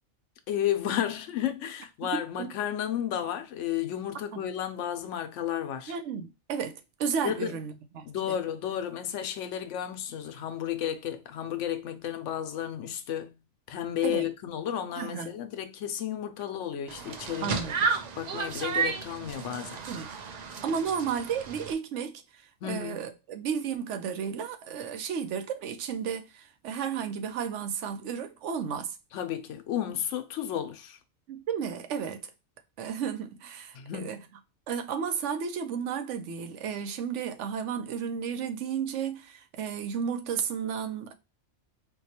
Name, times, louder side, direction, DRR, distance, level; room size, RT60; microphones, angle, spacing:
voice 1, 0.5-5.9 7.2-7.5 8.1-13.4 13.7-17.6 18.2-19.8 22.6-23.1 29.1-31.0 33.7-34.2, left 10 dB, 85° left, 0.9 m, -32 dB
voice 2, 2.1-2.5 4.3-4.4 5.9-8.4 14.0-14.3 15.0-15.3 17.4-17.9 19.9-20.1 20.6-29.0 31.3-32.3 32.8-34.2 34.7-41.1, right 7 dB, 80° right, 0.9 m, -33 dB
sound 1, 16.9-21.7, right 5 dB, 60° right, 0.4 m, -32 dB
4.5 x 2.2 x 2.8 m
omnidirectional pair, 1.2 m